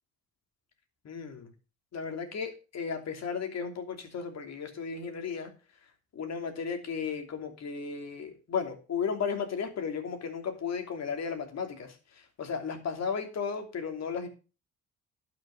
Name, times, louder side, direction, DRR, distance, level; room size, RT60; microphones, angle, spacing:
voice 1, 1.0-1.5 1.9-5.5 6.1-14.3, left 6 dB, 60° left, 5 dB, 3.0 m, -35 dB
11.5 x 6.3 x 6.4 m, 0.34 s
cardioid pair, 90°, 30 cm